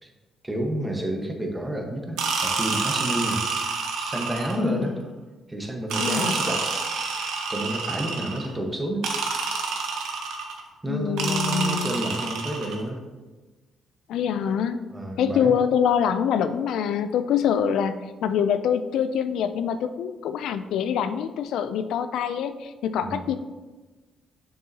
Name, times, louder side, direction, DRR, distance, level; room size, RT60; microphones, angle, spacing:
voice 1, 0.4-3.4 4.0-5.0 5.5-6.7 7.5-9.5 10.8-13.0 14.9-15.6 23.0-23.3, right 1 dB, 15° right, 2 dB, 1.2 m, -30 dB
sound 1, 2.2-4.7 5.9-8.5 9.0-10.6 11.2-12.8, right 4 dB, 85° right, 1.0 m, -28 dB
voice 2, 4.6-5.0 6.0-6.4 10.9-12.0 14.1-14.9 15.2-23.3, left 8 dB, 80° left, 10 dB, 0.3 m, -25 dB
6.7 x 6.5 x 2.8 m, 1.3 s
cardioid pair, 90°, 0 cm